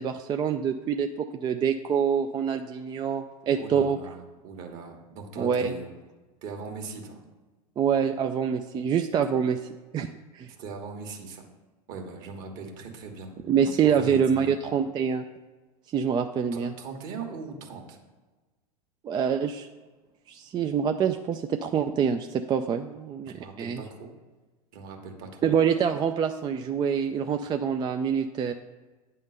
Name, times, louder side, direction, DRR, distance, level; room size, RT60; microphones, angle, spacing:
voice 1, 0.0-4.0 5.4-5.7 7.8-9.6 9.9-10.1 10.3-10.5 13.5-15.2 15.9-16.7 19.0-19.7 20.3-23.8 25.4-28.5, right 7 dB, 25° right, 6 dB, 0.4 m, -26 dB
voice 2, 3.6-5.9 6.4-7.2 10.5-11.4 11.9-13.3 13.8-14.5 16.5-18.0 23.2-24.1 24.7-25.5, right 4 dB, 50° right, 3 dB, 1.6 m, -40 dB
9.3 x 3.7 x 6.6 m, 1.2 s
hypercardioid pair, 95°, 19 cm